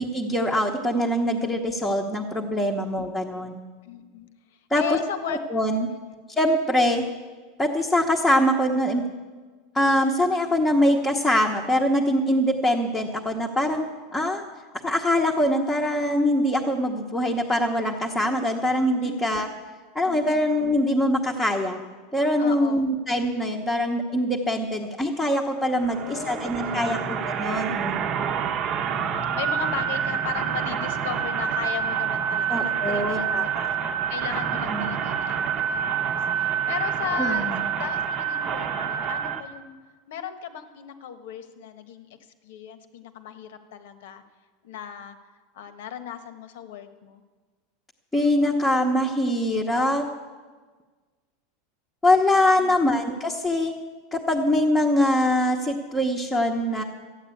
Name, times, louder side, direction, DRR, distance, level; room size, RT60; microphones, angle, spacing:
voice 1, 0.0-3.6 4.7-5.0 5.3-5.9 6.4-7.0 7.6-9.0 9.7-13.9 14.1-14.4 14.8-19.5 19.9-21.8 22.1-28.3 32.5-33.7 34.7-34.9 37.2-37.6 48.1-50.1 52.0-53.7 54.1-56.8, left 1 dB, 5° left, -3 dB, 0.9 m, -23 dB
voice 2, 3.8-4.3 4.8-5.4 5.9-6.2 19.0-19.4 20.0-20.4 22.4-22.9 25.8-27.0 27.5-28.0 28.8-33.7 34.1-35.4 35.7-39.8 40.1-42.2 42.4-44.2 44.6-45.2 45.5-47.2 52.6-53.1, left 9 dB, 75° left, 10 dB, 1.2 m, -36 dB
sound 1, 25.7-39.4, right 8 dB, 35° right, 0.9 m, -27 dB
13.5 x 9.1 x 8.4 m, 1.4 s
supercardioid pair, 165°, 0 cm